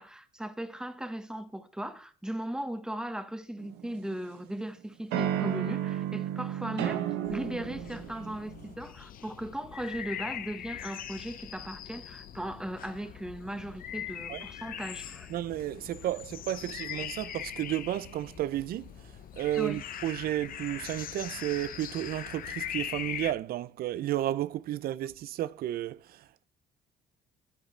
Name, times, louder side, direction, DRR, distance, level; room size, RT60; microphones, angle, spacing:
voice 1, 0.0-15.3 19.6-19.8, right 1 dB, 5° right, 1.3 m, -38 dB
sound 1, 3.6-4.5 5.1-8.7, right 11 dB, 85° right, 1.2 m, -33 dB
sound 2, 7.2-23.3, left 10 dB, 55° left, 1.0 m, -41 dB
voice 2, 15.3-18.9 19.4-26.4, right 13 dB, 60° right, 0.6 m, -32 dB
13.5 x 8.8 x 3.3 m
cardioid pair, 110°, 17 cm